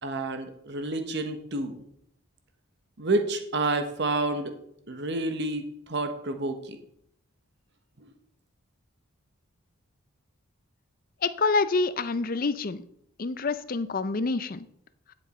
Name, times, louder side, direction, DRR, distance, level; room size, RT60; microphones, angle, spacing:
voice 1, 0.0-1.8 3.0-4.5 4.9-6.8 8.0-8.1, right 2 dB, 50° right, 7 dB, 1.1 m, -29 dB
voice 2, 11.2-12.8 13.2-14.6, left 3 dB, 40° left, 14 dB, 0.5 m, -27 dB
10.5 x 7.5 x 4.3 m, 0.72 s
head